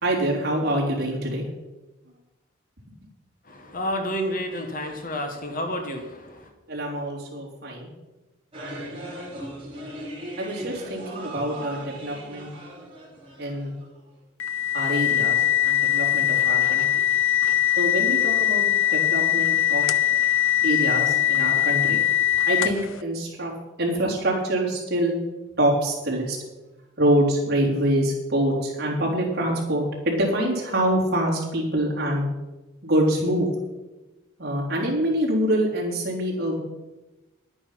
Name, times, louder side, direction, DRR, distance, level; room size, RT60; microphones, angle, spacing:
voice 1, 0.0-1.5 6.7-7.9 8.6-9.0 10.4-12.5 13.4-13.7 14.7-17.0 17.8-19.8 20.6-22.0 22.5-23.5 23.8-25.2 25.6-26.4 27.0-32.3 32.8-33.5 34.4-36.6, right 1 dB, 50° right, -3 dB, 3.5 m, -25 dB
voice 2, 3.4-6.5, equal, 40° left, 5 dB, 1.5 m, -30 dB
Quddam Msarref Rhythm+San'a, 8.5-14.0, right 1 dB, 25° right, 3.5 m, -38 dB
sound 1, 14.4-22.9, left 11 dB, 80° left, 0.7 m, -21 dB
11.0 x 9.1 x 5.8 m, 1.1 s
head